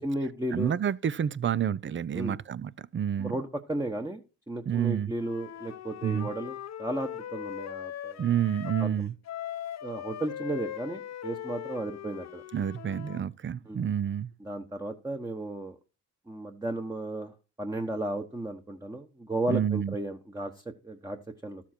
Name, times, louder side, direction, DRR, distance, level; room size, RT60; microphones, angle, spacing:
voice 1, 0.0-0.7 2.1-2.4 3.2-4.2 4.5-8.3 8.8-9.1 9.8-12.4 13.7-13.9 14.4-15.8 16.3-21.6, right 1 dB, 10° right, 1.2 m, -34 dB
voice 2, 0.5-3.3 4.7-5.1 6.0-6.3 8.2-9.1 12.5-14.3 19.5-19.9, right 9 dB, 35° right, 0.6 m, -29 dB
Wind instrument woodwind instrument, 5.2-8.9 9.2-13.3, left 11 dB, 50° left, 0.9 m, -40 dB
12.5 x 7.3 x 4.4 m
cardioid pair, 75°, 33 cm